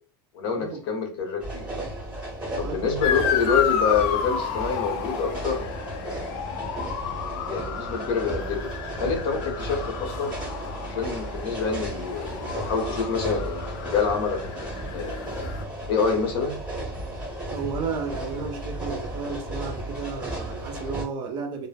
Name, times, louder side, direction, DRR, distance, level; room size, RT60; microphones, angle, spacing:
voice 1, 0.3-1.7 2.6-5.7 7.0-8.7 9.0-10.4 10.9-15.2 15.9-16.6, left 5 dB, 75° left, 0.9 m, -27 dB
sound 1, 1.4-21.0, right 1 dB, 10° right, 0.8 m, -34 dB
Motor vehicle (road) / Siren, 3.0-15.6, left 8 dB, 50° left, 0.4 m, -32 dB
voice 2, 17.5-21.7, right 5 dB, 35° right, 0.5 m, -33 dB
2.1 x 2.1 x 3.3 m
supercardioid pair, 160°, 13 cm